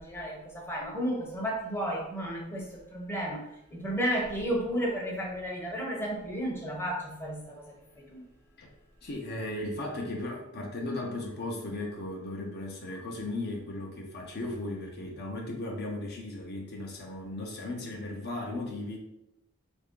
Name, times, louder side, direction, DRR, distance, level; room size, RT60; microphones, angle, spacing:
voice 1, 0.0-7.6 8.0-8.2, equal, 10° left, -1 dB, 0.7 m, -33 dB
voice 2, 9.0-19.0, left 2 dB, 50° left, 0 dB, 0.6 m, -36 dB
3.3 x 2.6 x 3.6 m, 0.82 s
head